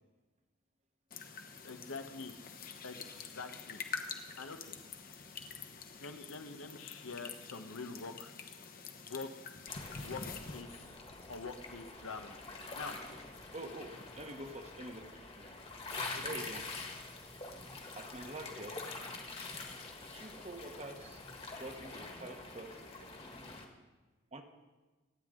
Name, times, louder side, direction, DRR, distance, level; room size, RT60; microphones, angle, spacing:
sound 1, 1.1-10.6, left 5 dB, 45° left, 1.1 m, -46 dB
voice 1, 1.6-2.4 2.8-3.0 3.3-3.8 4.4-4.8 6.0-8.3 9.1-9.3 10.0-11.0 11.3-12.4 12.7-13.0 16.1-16.2, left 4 dB, 85° left, 7 dB, 1.1 m, -45 dB
sound 2, 9.7-23.7, left 3 dB, 30° left, 1.6 m, -46 dB
voice 2, 13.5-15.5 16.2-16.7 17.9-18.8 20.1-21.2 21.5-23.1 24.3-24.4, right 1 dB, 30° right, 5 dB, 1.2 m, -46 dB
25.0 x 9.3 x 3.8 m, 1.2 s
head